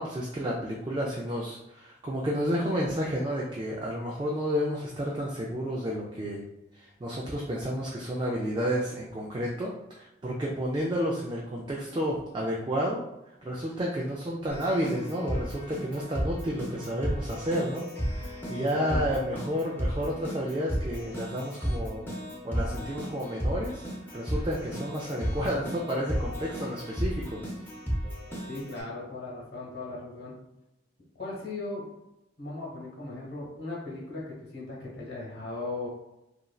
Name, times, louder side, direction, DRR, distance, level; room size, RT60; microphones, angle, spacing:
voice 1, 0.0-6.4 6.7-13.0 13.4-22.0 22.4-23.8 24.1-27.4, equal, 25° right, -3 dB, 0.3 m, -31 dB
Keyboard (musical), 14.5-28.8, equal, 10° left, 0.7 m, -34 dB
voice 2, 18.7-19.1 28.5-30.3 31.2-31.9 32.4-35.9, left 2 dB, 60° left, -4 dB, 1.1 m, -37 dB
3.0 x 2.5 x 2.3 m, 0.90 s
head